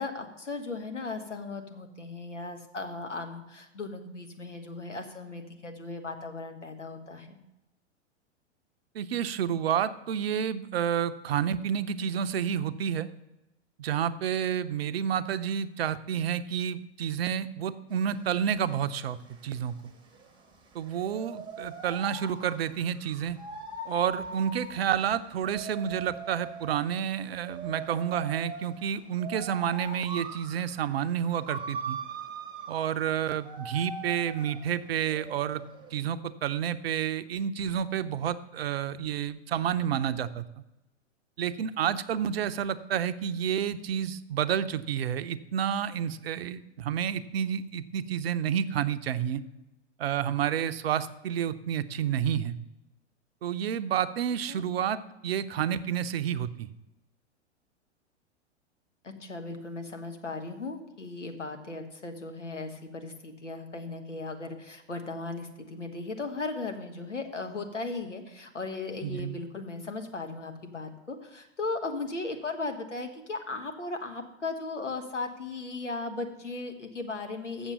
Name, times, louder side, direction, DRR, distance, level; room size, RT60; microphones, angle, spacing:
voice 1, 0.0-7.4 54.5-54.6 59.0-77.7, left 3 dB, 85° left, 6 dB, 1.4 m, -37 dB
voice 2, 8.9-13.1 13.8-19.2 19.4-19.7 20.7-23.4 23.9-32.0 32.7-35.6 35.9-40.4 41.4-49.4 50.0-52.6 53.4-56.7 69.0-69.4, right 9 dB, 55° right, 12 dB, 0.6 m, -30 dB
sound 1, 17.9-35.9, right 4 dB, 15° right, 1.0 m, -42 dB
7.2 x 7.1 x 6.8 m, 0.96 s
figure-of-eight pair, 100°, 35 cm